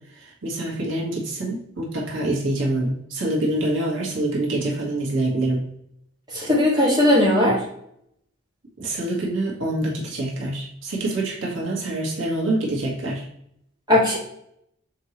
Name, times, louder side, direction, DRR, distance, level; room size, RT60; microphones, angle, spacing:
voice 1, 0.1-5.6 8.8-13.2, right 1 dB, 85° right, -2 dB, 1.8 m, -26 dB
voice 2, 6.3-7.6 13.9-14.2, left 1 dB, 20° right, -6 dB, 2.2 m, -18 dB
6.6 x 4.6 x 3.2 m, 0.72 s
head